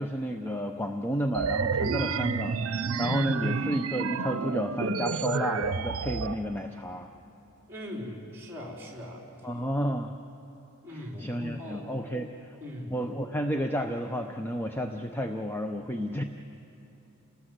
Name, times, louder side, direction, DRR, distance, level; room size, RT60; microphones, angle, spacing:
voice 1, 0.0-7.1 9.4-10.1 11.2-12.3 12.9-16.2, equal, 10° left, 5 dB, 0.6 m, -31 dB
sound 1, 1.3-6.3, right 5 dB, 75° right, 0.7 m, -30 dB
voice 2, 7.7-9.3 10.8-11.9 12.6-13.0, left 1 dB, 10° right, -1 dB, 4.2 m, -40 dB
28.5 x 18.5 x 8.0 m, 2.9 s
head